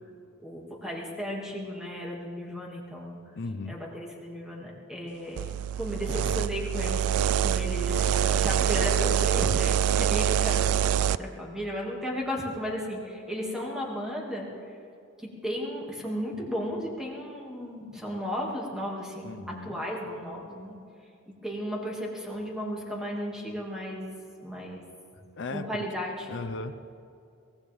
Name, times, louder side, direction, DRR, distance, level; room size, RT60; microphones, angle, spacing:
voice 1, 0.4-3.2 3.7-5.5 5.8-7.1 7.4-14.5 15.2-20.8 21.3-24.1 24.4-24.8 25.5-26.3, equal, 5° right, -2 dB, 2.3 m, -34 dB
voice 2, 3.4-3.8 19.2-19.8 25.4-25.8 26.3-26.9, left 3 dB, 55° left, 8 dB, 0.6 m, -36 dB
sound 1, 5.4-11.2, right 9 dB, 80° right, 0.4 m, -25 dB
23.5 x 16.5 x 3.6 m, 2.5 s
head